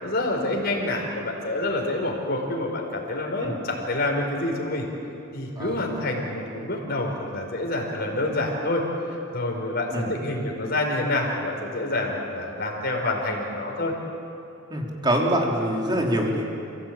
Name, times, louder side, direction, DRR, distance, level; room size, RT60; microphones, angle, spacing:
voice 1, 0.0-4.8 5.3-8.8 9.3-13.9, left 2 dB, 50° left, 0 dB, 5.0 m, -27 dB
voice 2, 14.7-16.5, right 1 dB, 25° right, -1 dB, 3.4 m, -24 dB
29.0 x 16.5 x 8.9 m, 2.8 s
head